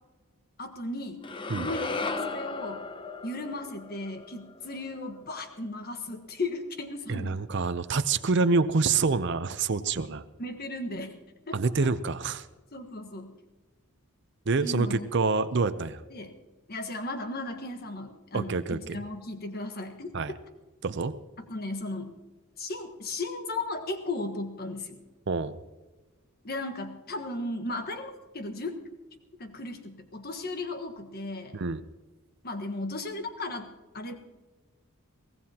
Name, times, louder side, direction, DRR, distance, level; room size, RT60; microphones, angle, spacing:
voice 1, 0.6-1.2 1.5-2.8 3.2-7.4 10.4-11.2 11.5-11.9 12.7-13.3 14.6-15.1 16.1-16.3 16.7-20.4 21.4-22.2 22.6-25.0 26.4-28.7 29.4-31.6 32.4-34.1, left 2 dB, 45° left, 6 dB, 1.4 m, -36 dB
sound 1, 1.2-5.5, left 3 dB, 25° left, 0.6 m, -36 dB
voice 2, 7.1-10.2 11.5-12.4 14.5-16.0 18.3-19.0 20.1-20.3 20.8-21.2 25.3-25.5 31.5-31.8, right 4 dB, 55° right, 11 dB, 0.6 m, -27 dB
23.0 x 16.5 x 2.9 m, 1.2 s
head